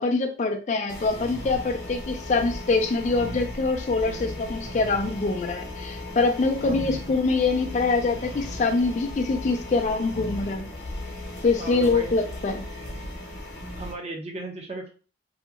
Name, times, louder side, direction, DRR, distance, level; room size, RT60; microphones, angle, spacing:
voice 1, 0.0-10.7 11.4-12.6, left 3 dB, 40° left, 6 dB, 0.3 m, -24 dB
sound 1, 0.9-13.9, left 1 dB, 60° left, 0.9 m, -36 dB
voice 2, 4.0-4.4 6.6-7.1 11.6-12.1 13.8-14.9, right 2 dB, 35° right, 1 dB, 0.6 m, -36 dB
2.8 x 2.7 x 2.4 m, 0.37 s
head